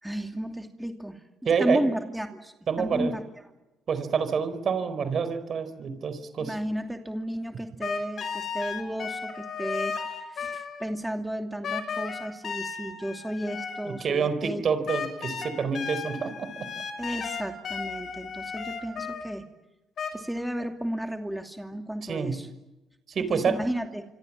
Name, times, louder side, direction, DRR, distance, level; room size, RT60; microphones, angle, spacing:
voice 1, 0.0-1.2 1.6-3.2 6.4-14.8 17.0-19.4 20.1-22.5 23.2-24.1, equal, 5° right, 4 dB, 2.7 m, -33 dB
voice 2, 1.4-1.8 2.7-3.1 3.9-6.5 13.8-16.5 22.1-22.4 23.1-23.6, right 6 dB, 55° right, 12 dB, 4.5 m, -27 dB
sound 1, 7.8-11.0 11.6-14.1 14.9-19.4 20.0-20.1, left 6 dB, 60° left, 5.9 m, -34 dB
26.5 x 25.5 x 7.5 m, 1.0 s
supercardioid pair, 75°, 0 cm